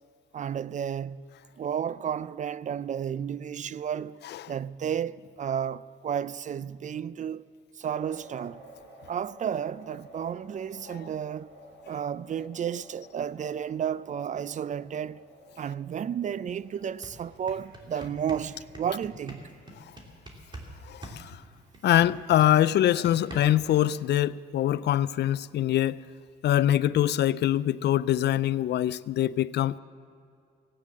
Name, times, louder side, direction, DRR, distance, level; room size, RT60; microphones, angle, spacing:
voice 1, 0.3-1.3 1.6-4.2 4.5-7.5 7.8-8.6 9.1-11.5 11.9-15.2 15.6-19.5, right 8 dB, 40° right, 0.4 m, -32 dB
sound 1, 7.8-19.4, equal, 65° right, 4.8 m, -53 dB
sound 2, 16.5-16.6 16.9-20.7 21.0-23.7, right 1 dB, 25° right, 2.7 m, -44 dB
voice 2, 21.8-26.0 26.4-29.8, left 12 dB, 60° left, 0.4 m, -23 dB
17.0 x 9.2 x 7.5 m
cardioid pair, 90°, 20 cm